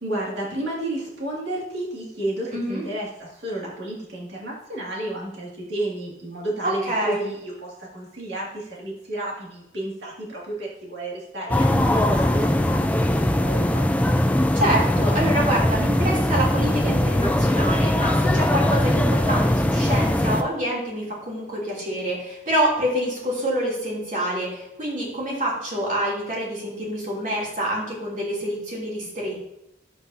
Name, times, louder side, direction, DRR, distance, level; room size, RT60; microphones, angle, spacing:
voice 1, 0.0-13.9, right 1 dB, 60° right, -5 dB, 2.3 m, -32 dB
voice 2, 2.5-2.8 6.6-7.3 14.5-29.4, right 1 dB, 40° right, -5 dB, 3.0 m, -26 dB
sound 1, 11.5-20.4, left 1 dB, 5° left, 0.3 m, -20 dB
11.5 x 8.0 x 2.8 m, 0.82 s
head